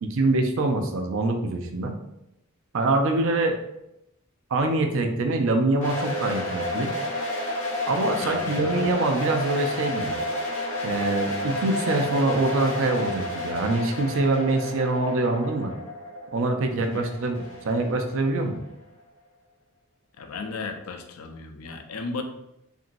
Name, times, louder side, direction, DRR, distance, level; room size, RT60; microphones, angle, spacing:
voice 1, 0.0-1.9 2.7-3.6 4.5-6.9 7.9-10.2 10.8-15.7 16.3-18.6, right 2 dB, 65° right, 5 dB, 0.4 m, -24 dB
sound 1, 5.8-18.7, left 1 dB, 35° left, 0.9 m, -31 dB
voice 2, 8.2-8.9 16.8-17.1 20.2-22.2, left 4 dB, 85° left, 5 dB, 0.4 m, -35 dB
2.9 x 2.6 x 2.6 m, 0.86 s
head